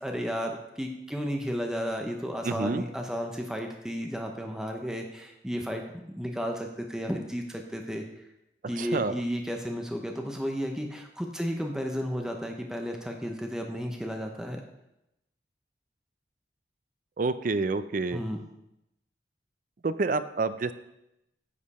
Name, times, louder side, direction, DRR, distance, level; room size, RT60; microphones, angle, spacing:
voice 1, 0.0-8.1 8.7-14.6 18.1-18.4, equal, 5° right, 2 dB, 0.8 m, -33 dB
voice 2, 2.4-2.8 8.8-9.2 17.2-18.2 19.8-20.7, right 3 dB, 50° right, 13 dB, 0.4 m, -28 dB
10.0 x 7.6 x 4.2 m, 0.87 s
head